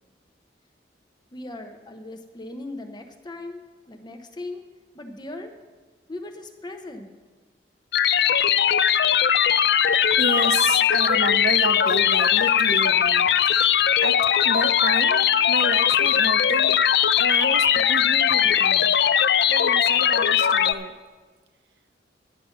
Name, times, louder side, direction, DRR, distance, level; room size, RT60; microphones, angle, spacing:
voice 1, 1.3-4.6 4.9-5.5 6.1-7.1, left 2 dB, 25° left, 5 dB, 0.8 m, -38 dB
sound 1, 7.9-20.7, left 9 dB, 65° left, 0.4 m, -20 dB
voice 2, 9.4-14.1 14.4-16.8 17.2-18.9 19.5-20.9, right 3 dB, 65° right, 7 dB, 0.7 m, -31 dB
10.5 x 9.4 x 5.6 m, 1.3 s
head